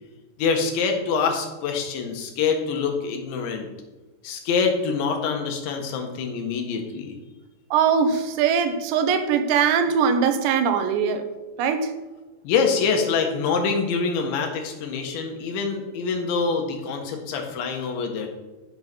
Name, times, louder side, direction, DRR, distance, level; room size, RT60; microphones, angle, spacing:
voice 1, 0.4-3.7 4.2-7.1 12.4-18.3, left 5 dB, 75° left, 3 dB, 3.9 m, -25 dB
voice 2, 7.7-11.2 11.6-11.9, right 6 dB, 75° right, 8 dB, 3.2 m, -21 dB
13.5 x 6.8 x 6.3 m, 1.2 s
omnidirectional pair, 5.3 m